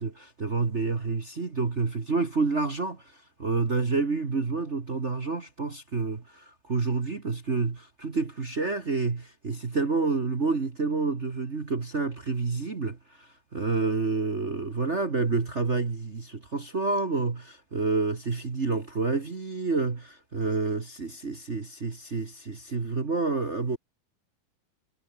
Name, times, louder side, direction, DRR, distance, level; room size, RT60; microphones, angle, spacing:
voice 1, 0.0-23.8, right 4 dB, 45° right, 0.8 m, -29 dB
omnidirectional pair, 4.1 m